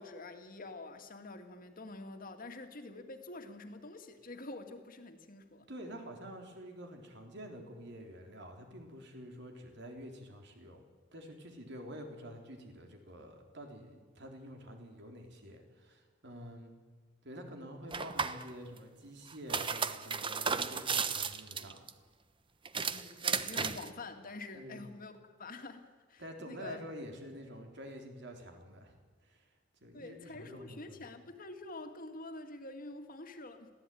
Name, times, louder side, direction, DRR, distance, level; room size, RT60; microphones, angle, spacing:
voice 1, 0.0-5.7 22.9-26.8 29.9-33.7, left 2 dB, 50° left, 6 dB, 2.2 m, -47 dB
voice 2, 5.7-10.8 11.1-16.7 17.2-21.8 24.5-24.8 26.2-29.0 29.3-29.4 29.8-31.1, equal, 65° right, 3 dB, 3.8 m, -48 dB
sound 1, 17.9-18.4 19.3-21.9 22.7-23.9, right 5 dB, 25° right, 0.9 m, -34 dB
21.5 x 16.0 x 9.3 m, 1.5 s
head